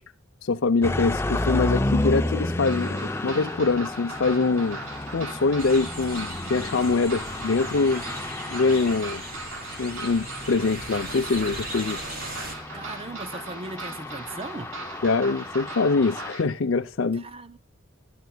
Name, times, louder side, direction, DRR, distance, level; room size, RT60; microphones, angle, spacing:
voice 1, 0.4-4.8 5.1-8.0 8.5-9.2 9.8-12.0 15.0-17.2, left 4 dB, 65° left, 0.6 m, -24 dB
sound 1, 0.8-16.3, left 2 dB, 10° left, 0.5 m, -32 dB
sound 2, 2.6-16.4, right 2 dB, 75° right, 3.0 m, -40 dB
sound 3, 5.6-12.5, right 1 dB, 45° right, 4.0 m, -38 dB
voice 2, 12.7-14.7 17.1-17.6, right 3 dB, 25° right, 0.6 m, -38 dB
26.5 x 11.5 x 2.3 m
head